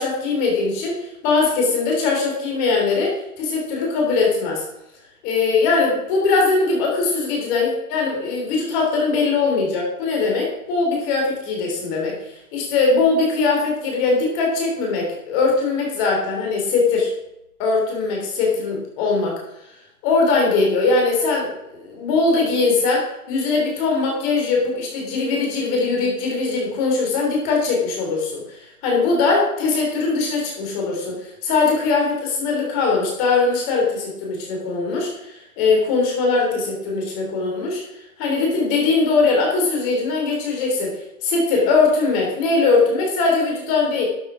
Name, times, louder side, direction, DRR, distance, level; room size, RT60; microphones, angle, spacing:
voice 1, 0.0-4.6 5.2-12.2 12.5-17.1 17.6-19.4 20.0-37.8 38.2-44.0, left 4 dB, 20° left, 0 dB, 3.3 m, -21 dB
11.5 x 8.0 x 4.9 m, 0.86 s
hypercardioid pair, 160°, 45 cm